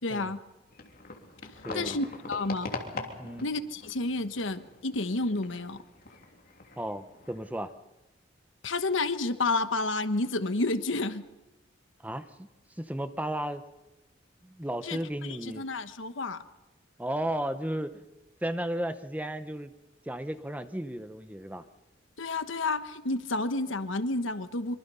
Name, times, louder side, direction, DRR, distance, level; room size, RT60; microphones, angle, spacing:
voice 1, 0.0-0.4 1.7-2.7 3.4-5.8 8.6-11.3 14.8-16.4 22.2-24.7, left 2 dB, 80° left, 10 dB, 1.2 m, -30 dB
sound 1, 0.7-7.5, left 3 dB, 50° left, 3.0 m, -43 dB
voice 2, 1.6-2.0 3.2-3.5 6.8-7.7 12.0-12.5 12.8-13.6 14.4-15.6 17.0-18.0 18.4-19.7 20.1-21.6, right 1 dB, 10° right, 10 dB, 0.9 m, -34 dB
25.0 x 24.0 x 5.6 m, 1.0 s
head